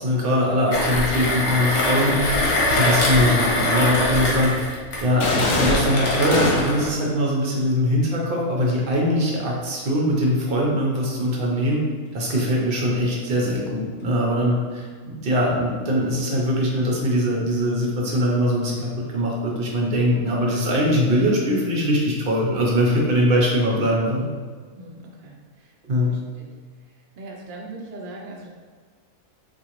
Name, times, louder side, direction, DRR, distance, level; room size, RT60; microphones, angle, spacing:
voice 1, 0.0-2.3 2.7-4.6 5.0-11.8 12.1-24.3 25.8-26.1, equal, 50° right, -3 dB, 0.8 m, -22 dB
Mechanisms, 0.7-6.9, left 1 dB, 65° left, 1.0 m, -23 dB
sound 1, 5.2-6.9, left 2 dB, 80° left, 0.4 m, -24 dB
voice 2, 24.8-25.7 26.1-26.5 27.2-28.5, right 2 dB, 85° right, -1 dB, 0.4 m, -40 dB
3.7 x 2.5 x 2.9 m, 1.5 s
omnidirectional pair, 1.4 m